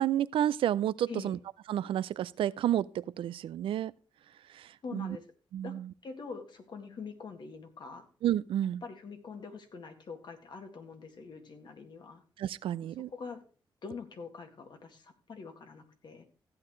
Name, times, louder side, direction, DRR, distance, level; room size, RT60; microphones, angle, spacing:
voice 1, 0.0-1.4 1.7-3.9 4.5-5.2 5.5-5.9 8.2-8.8 12.4-13.1, right 11 dB, 85° right, 0.4 m, -30 dB
voice 2, 1.1-1.4 4.8-5.3 5.6-5.8 6.0-8.1 8.8-12.2 12.8-13.4 13.8-16.2, left 5 dB, 60° left, 2.0 m, -44 dB
15.0 x 8.7 x 3.1 m
cardioid pair, 95°, 9 cm